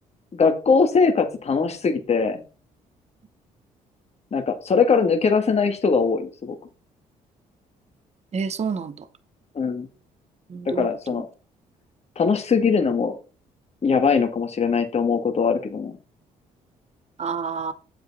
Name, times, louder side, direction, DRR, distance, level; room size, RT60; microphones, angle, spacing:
voice 1, 0.3-2.4 4.3-6.6 9.6-9.9 10.7-11.3 12.2-13.2 13.8-16.0, left 5 dB, 40° left, 1.8 m, -21 dB
voice 2, 8.3-9.1 10.5-11.2 17.2-17.7, right 5 dB, 45° right, 0.9 m, -29 dB
8.1 x 7.8 x 4.1 m
supercardioid pair, 65°, 16 cm